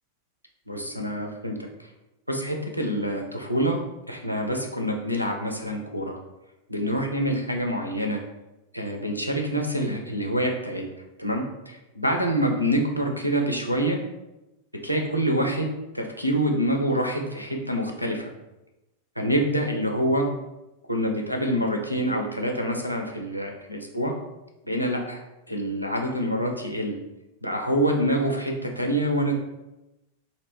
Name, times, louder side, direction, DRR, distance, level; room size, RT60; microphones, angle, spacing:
voice 1, 0.7-1.6 2.3-3.8 4.1-6.2 6.7-8.2 8.7-10.8 11.2-14.0 14.8-15.7 15.9-18.3 19.2-20.3 20.9-24.1 24.7-25.2 25.5-27.0 27.4-29.3, equal, 90° left, 1 dB, 0.4 m, -26 dB
2.5 x 2.0 x 3.4 m, 0.97 s
figure-of-eight pair, 90°, 0 cm